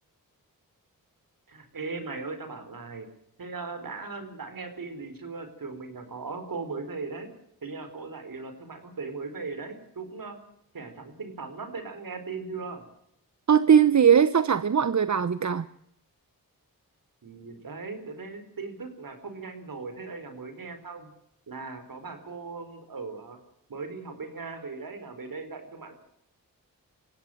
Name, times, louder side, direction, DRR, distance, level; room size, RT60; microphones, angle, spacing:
voice 1, 1.5-3.1 3.4-7.3 7.6-10.4 10.7-12.8 17.2-21.1 21.5-23.4 23.7-25.9, right 4 dB, 65° right, 9 dB, 4.4 m, -38 dB
voice 2, 13.5-15.7, right 7 dB, 50° right, 15 dB, 0.9 m, -20 dB
21.0 x 16.0 x 9.2 m, 0.74 s
cardioid pair, 55°, 36 cm